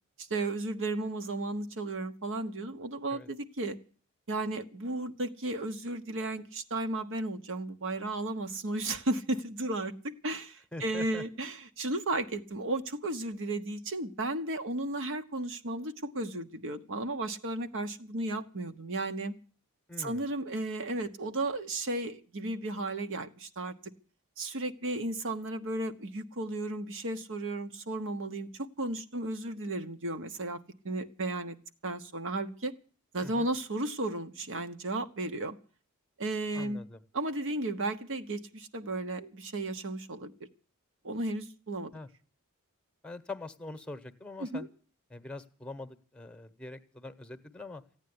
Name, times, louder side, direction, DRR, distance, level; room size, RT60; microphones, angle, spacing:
voice 1, 0.2-3.8 4.3-19.3 20.0-23.7 24.4-30.6 30.8-31.6 31.8-32.7 33.1-35.6 36.2-36.8 37.1-40.3 41.0-41.9 44.4-44.7, right 2 dB, 60° right, 1.2 m, -34 dB
voice 2, 10.7-11.2 19.9-20.2 33.2-33.5 36.5-37.0 41.9-42.1 43.0-44.7 45.1-47.8, left 2 dB, 5° left, 1.1 m, -43 dB
15.5 x 9.2 x 9.7 m
head